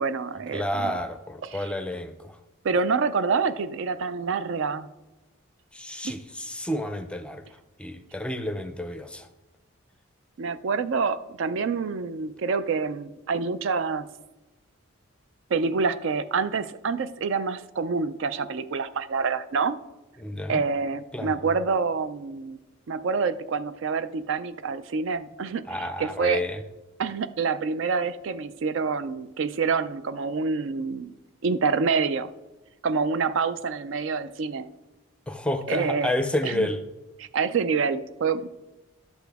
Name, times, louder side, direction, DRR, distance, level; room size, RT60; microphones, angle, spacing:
voice 1, 0.0-0.9 1.5-1.7 2.6-4.9 6.0-6.2 10.4-14.1 15.5-19.8 20.5-22.6 22.9-26.4 27.0-31.1 31.4-32.3 32.8-34.7 35.7-36.1 36.4-36.7 37.2-38.5, right 5 dB, 60° right, 13 dB, 0.4 m, -27 dB
voice 2, 0.5-2.4 5.7-7.4 7.8-9.3 20.2-20.6 21.1-21.3 25.7-26.6 35.3-36.8, left 1 dB, 5° left, 9 dB, 0.5 m, -30 dB
11.5 x 8.0 x 3.5 m, 1.1 s
head